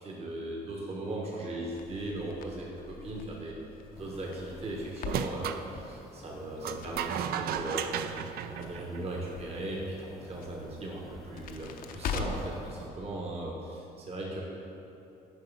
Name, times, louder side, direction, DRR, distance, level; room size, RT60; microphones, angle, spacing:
voice 1, 0.0-3.6 3.9-8.0 8.6-14.4, right 1 dB, 35° right, -2 dB, 1.2 m, -38 dB
Crackle, 1.7-12.6, left 6 dB, 60° left, 0.6 m, -43 dB
sound 1, 3.9-12.9, equal, ahead, 0.6 m, -52 dB
sound 2, 5.0-5.6 6.6-9.3, right 9 dB, 65° right, 0.4 m, -34 dB
7.7 x 4.7 x 5.5 m, 2.9 s
cardioid pair, 110°, 17 cm